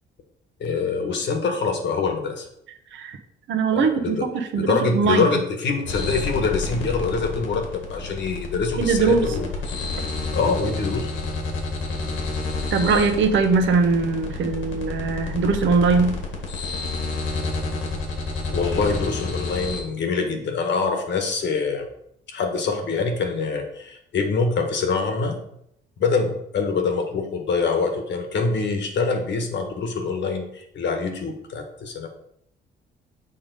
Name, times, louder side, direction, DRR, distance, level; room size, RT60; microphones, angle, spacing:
voice 1, 0.6-2.5 3.7-4.3 4.5-9.5 10.3-11.1 18.5-21.9 22.3-25.4 26.0-32.1, left 4 dB, 65° left, 5 dB, 1.3 m, -25 dB
voice 2, 3.5-5.3 8.8-9.3 12.7-16.2, right 4 dB, 75° right, 7 dB, 0.9 m, -21 dB
sound 1, 5.9-19.8, left 3 dB, 80° left, 1.7 m, -29 dB
6.9 x 3.6 x 5.2 m, 0.74 s
cardioid pair, 90°, 20 cm